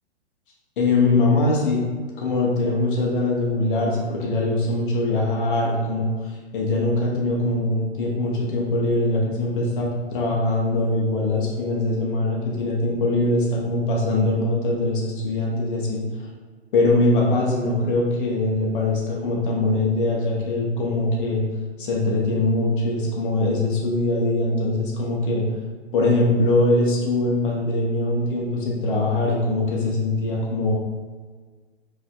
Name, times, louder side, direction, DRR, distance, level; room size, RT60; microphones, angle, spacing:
voice 1, 0.8-1.8 2.2-16.0 16.7-21.4 21.8-25.5 25.9-30.7, left 2 dB, 50° left, -3 dB, 0.8 m, -22 dB
4.9 x 2.5 x 2.3 m, 1.5 s
figure-of-eight pair, 120°, 34 cm